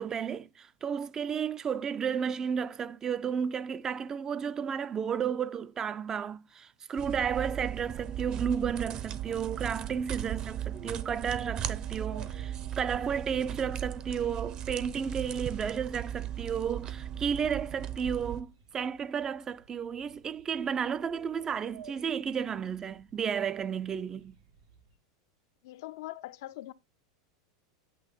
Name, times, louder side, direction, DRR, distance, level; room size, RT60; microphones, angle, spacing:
voice 1, 0.0-24.4, right 7 dB, 25° right, 0.4 m, -33 dB
sound 1, 7.0-18.4, right 10 dB, 40° right, 0.7 m, -37 dB
sound 2, 10.8-25.0, right 6 dB, 90° right, 1.6 m, -57 dB
voice 2, 25.6-26.7, left 16 dB, 70° left, 0.4 m, -42 dB
8.4 x 2.9 x 5.3 m
hypercardioid pair, 110°, 2 cm